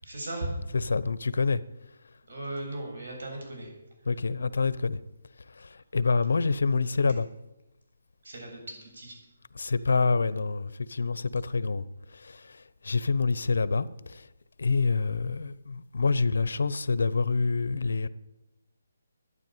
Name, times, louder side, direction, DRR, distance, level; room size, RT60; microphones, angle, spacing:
voice 1, 0.0-0.9 2.3-3.7 4.0-4.2 8.2-9.2, right 1 dB, 65° right, 7.7 m, -37 dB
voice 2, 0.8-1.6 4.1-5.0 5.6-7.3 9.6-11.8 12.1-14.2 14.6-18.1, left 4 dB, 70° left, 0.8 m, -27 dB
12.5 x 9.9 x 9.2 m
hypercardioid pair, 175°, 0 cm